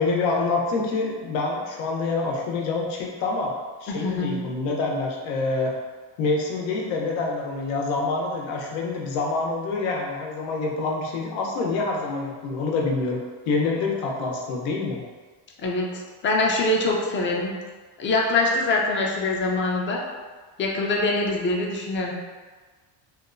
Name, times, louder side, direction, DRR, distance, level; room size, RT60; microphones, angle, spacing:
voice 1, 0.0-3.5 3.8-5.7 6.2-13.2 13.5-15.0, left 3 dB, 90° left, -1 dB, 0.7 m, -26 dB
voice 2, 3.9-4.3 15.6-17.5 18.0-20.0 20.6-22.1, left 2 dB, 25° left, -1 dB, 0.3 m, -24 dB
2.9 x 2.1 x 2.5 m, 1.4 s
cardioid pair, 105°, 50 cm